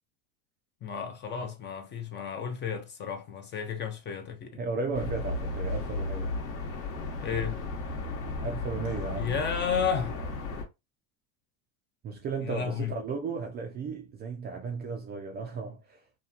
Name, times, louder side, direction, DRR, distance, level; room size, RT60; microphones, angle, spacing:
voice 1, 0.8-4.6 7.2-7.6 9.1-10.2 12.4-13.0, left 7 dB, 25° left, 0.5 m, -32 dB
voice 2, 4.5-6.3 8.4-9.3 12.0-16.0, right 4 dB, 25° right, 0.4 m, -35 dB
sound 1, 4.9-10.6, left 2 dB, 45° left, 1.0 m, -34 dB
2.8 x 2.3 x 2.4 m
supercardioid pair, 115°, 42 cm